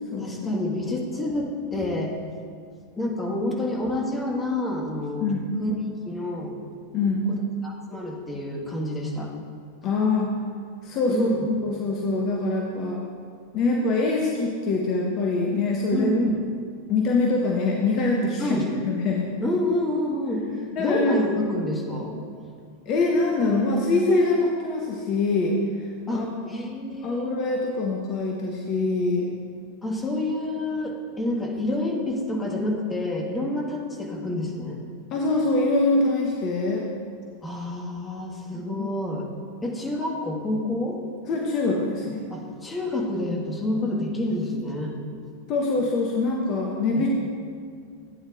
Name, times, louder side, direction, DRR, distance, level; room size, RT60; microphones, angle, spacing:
voice 1, 0.2-2.1 3.0-5.3 5.6-5.8 6.1-6.6 7.3-9.3 11.1-11.4 15.9-16.4 18.4-18.7 19.4-20.5 20.8-22.2 26.1-27.3 29.8-34.8 37.4-39.3 39.6-41.0 42.3-44.9 46.9-47.0, left 1 dB, 15° left, -2 dB, 1.9 m, -28 dB
voice 2, 6.9-7.3 9.8-10.3 10.8-11.3 11.6-13.0 13.5-16.1 16.9-18.6 18.8-19.3 20.8-21.2 22.9-25.6 26.1-26.2 27.0-29.3 35.1-36.8 38.5-38.9 41.3-42.2 45.5-47.1, left 3 dB, 35° left, -1 dB, 1.1 m, -24 dB
16.0 x 9.4 x 2.6 m, 2.2 s
figure-of-eight pair, 90°, 0 cm